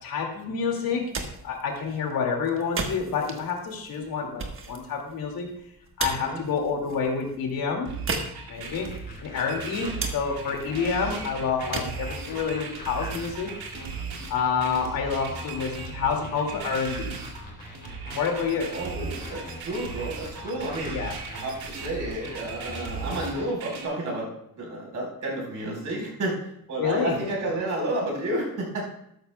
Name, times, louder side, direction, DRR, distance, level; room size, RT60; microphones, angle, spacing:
voice 1, 0.0-1.1 1.4-5.5 6.0-7.9 8.5-8.9 9.2-13.5 14.3-17.2 18.1-18.8 20.9-21.1 26.8-27.2, left 5 dB, 70° left, 2 dB, 2.2 m, -28 dB
sound 1, 0.9-14.8, right 3 dB, 35° right, 1.3 m, -38 dB
sound 2, 7.9-23.9, right 6 dB, 80° right, 2.7 m, -37 dB
sound 3, 8.6-23.3, left 2 dB, 25° left, 3.0 m, -42 dB
voice 2, 18.7-21.0 21.3-28.9, right 1 dB, 55° right, -1 dB, 4.2 m, -31 dB
13.0 x 12.5 x 2.2 m, 0.76 s
cardioid pair, 160°, 36 cm